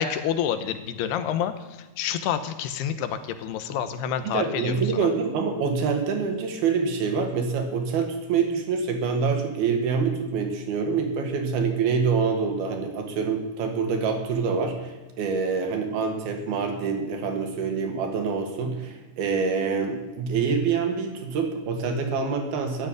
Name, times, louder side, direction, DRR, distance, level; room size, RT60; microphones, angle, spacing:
voice 1, 0.0-5.1, left 9 dB, 90° left, 10 dB, 3.1 m, -28 dB
voice 2, 4.3-22.9, right 5 dB, 70° right, 4 dB, 3.7 m, -26 dB
14.0 x 8.1 x 10.0 m, 1.2 s
omnidirectional pair, 4.6 m